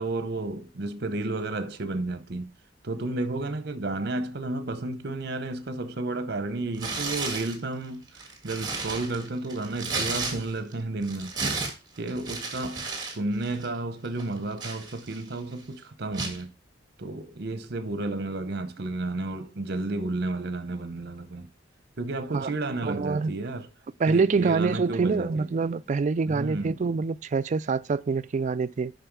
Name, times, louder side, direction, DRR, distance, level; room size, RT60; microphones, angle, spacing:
voice 1, 0.0-2.5 2.8-8.0 8.4-11.3 12.0-16.5 17.0-21.5 22.0-23.7 24.1-25.5 26.3-26.8, right 2 dB, 55° right, 0.8 m, -32 dB
Tearing, 6.7-7.6 8.1-10.7 11.0-13.2 13.4-13.7 14.2-15.3 16.1-16.4, right 4 dB, 20° right, 1.7 m, -33 dB
voice 2, 22.8-23.3 24.0-28.9, right 4 dB, 40° right, 0.3 m, -25 dB
7.7 x 5.6 x 4.6 m
head